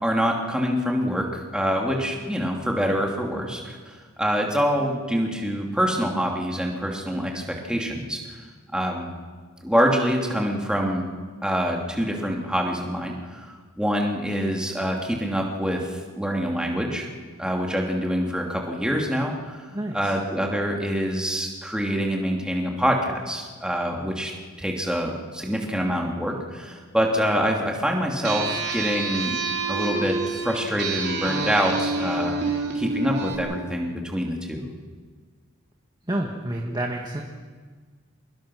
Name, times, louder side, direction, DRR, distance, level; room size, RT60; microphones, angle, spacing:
voice 1, 0.0-8.2 8.7-9.1 9.6-11.1 11.4-15.9 16.2-17.1 17.4-19.6 19.9-24.3 24.6-29.4 29.7-32.3 32.7-34.7, equal, 5° right, 0 dB, 2.8 m, -25 dB
voice 2, 19.7-20.2 36.1-37.2, right 1 dB, 20° right, 1 dB, 1.7 m, -29 dB
sound 1, 28.2-33.4, right 3 dB, 50° right, 3.9 m, -28 dB
26.5 x 21.5 x 6.4 m, 1.5 s
head